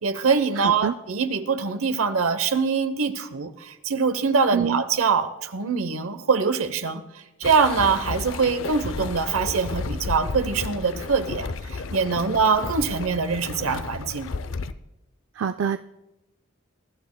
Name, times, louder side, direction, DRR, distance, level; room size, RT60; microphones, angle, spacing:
voice 1, 0.0-7.0 7.4-14.3, right 5 dB, 85° right, 10 dB, 0.8 m, -23 dB
voice 2, 0.6-0.9 4.5-4.8 15.3-15.8, right 7 dB, 60° right, 9 dB, 0.3 m, -25 dB
sound 1, 7.4-14.7, left 4 dB, 65° left, 0.5 m, -32 dB
23.0 x 12.5 x 2.2 m, 0.96 s
head